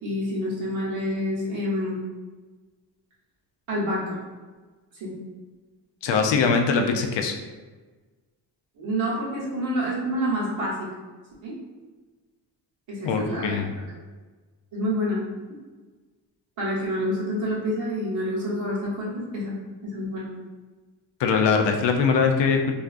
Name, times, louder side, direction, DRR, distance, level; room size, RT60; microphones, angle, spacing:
voice 1, 0.0-1.9 3.7-4.2 5.0-5.1 8.8-10.9 11.4-11.5 12.9-13.6 14.7-15.2 16.6-19.5 19.8-20.3, equal, 80° right, -6 dB, 1.1 m, -27 dB
voice 2, 6.0-7.3 13.0-13.7 21.2-22.7, left 5 dB, 70° left, 4 dB, 0.5 m, -22 dB
2.5 x 2.3 x 2.4 m, 1.3 s
supercardioid pair, 50°, 45 cm